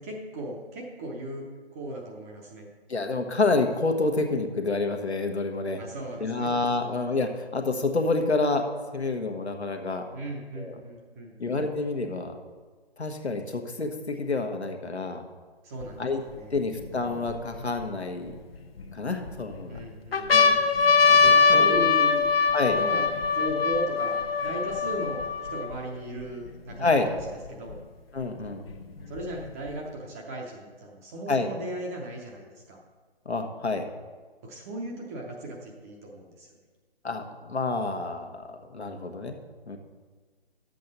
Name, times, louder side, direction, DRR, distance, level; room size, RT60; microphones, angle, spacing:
voice 1, 0.0-1.4 1.7-2.7 5.8-6.5 10.1-11.4 15.6-16.5 19.7-20.6 21.3-22.2 22.7-23.0 23.3-27.2 27.5-27.8 29.1-32.8 34.4-36.5, right 1 dB, 15° right, -1 dB, 0.6 m, -37 dB
voice 2, 2.9-5.8 6.2-8.7 8.9-10.0 10.6-10.8 11.4-12.4 13.0-15.2 16.0-16.2 16.5-18.3 18.9-19.8 20.3-20.6 21.1-21.9 22.5-22.8 26.8-27.1 28.1-28.7 31.3-31.5 33.2-33.9 37.0-39.4 39.7-39.8, left 3 dB, 90° left, 5 dB, 1.3 m, -28 dB
sound 1, 15.8-15.9 16.6-17.8 18.5-19.3 19.8-19.9 20.1-25.7 26.5-26.6 26.7-27.7 28.7-29.7, left 5 dB, 60° left, 1.0 m, -22 dB
10.5 x 7.6 x 4.1 m, 1.4 s
figure-of-eight pair, 145°, 32 cm